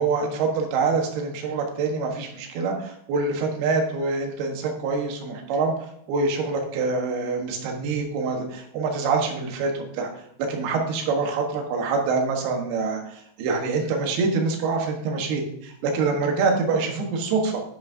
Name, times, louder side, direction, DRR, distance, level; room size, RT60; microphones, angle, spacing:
voice 1, 0.0-17.6, right 4 dB, 70° right, 2 dB, 3.2 m, -25 dB
11.0 x 9.9 x 2.7 m, 0.75 s
omnidirectional pair, 5.0 m